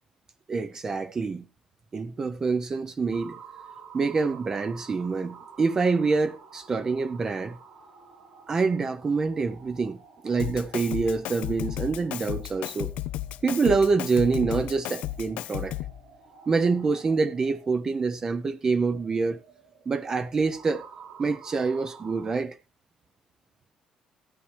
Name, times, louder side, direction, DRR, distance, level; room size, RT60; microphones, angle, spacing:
voice 1, 0.5-1.4 1.9-3.4 3.9-7.6 8.5-12.9 13.4-15.7 16.5-19.4 19.9-20.9 21.2-22.6, right 4 dB, 25° right, 0.7 m, -26 dB
sound 1, 3.1-22.4, right 6 dB, 70° right, 4.9 m, -51 dB
Drum kit, 10.4-16.0, left 14 dB, 80° left, 0.6 m, -34 dB
14.5 x 9.5 x 3.3 m
cardioid pair, 155°, 2 cm